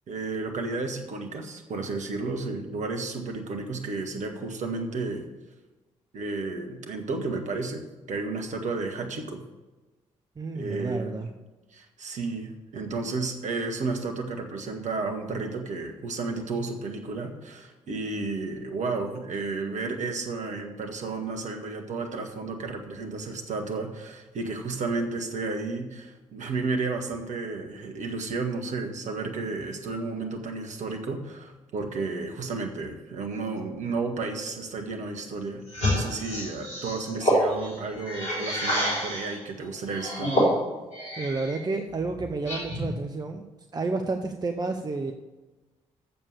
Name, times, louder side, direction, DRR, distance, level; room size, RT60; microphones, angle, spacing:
voice 1, 0.1-5.2 6.1-9.4 10.5-11.2 11.7-35.6 35.9-40.3, right 3 dB, 50° right, 4 dB, 1.4 m, -32 dB
voice 2, 10.4-11.3 41.2-43.4 43.7-45.1, right 3 dB, 25° right, 5 dB, 0.7 m, -30 dB
sound 1, 35.7-39.4 39.9-41.6 41.9-43.0, equal, 75° left, 3.2 m, -28 dB
7.4 x 6.9 x 8.1 m, 1.2 s
figure-of-eight pair, 40°, 16 cm